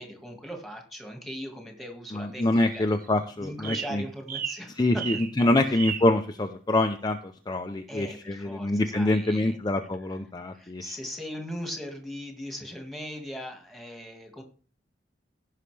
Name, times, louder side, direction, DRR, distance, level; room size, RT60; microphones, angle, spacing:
voice 1, 0.0-2.9 3.4-5.1 5.6-5.8 7.9-9.6 10.5-14.4, equal, ahead, 3 dB, 1.8 m, -39 dB
voice 2, 2.1-4.0 4.8-10.9, left 2 dB, 25° left, 5 dB, 0.5 m, -25 dB
sound 1, 2.4-3.2 3.6-4.0 4.3-4.7 5.0-5.3 5.7-6.1, right 8 dB, 55° right, 1.0 m, -34 dB
16.5 x 5.6 x 3.3 m, 0.41 s
head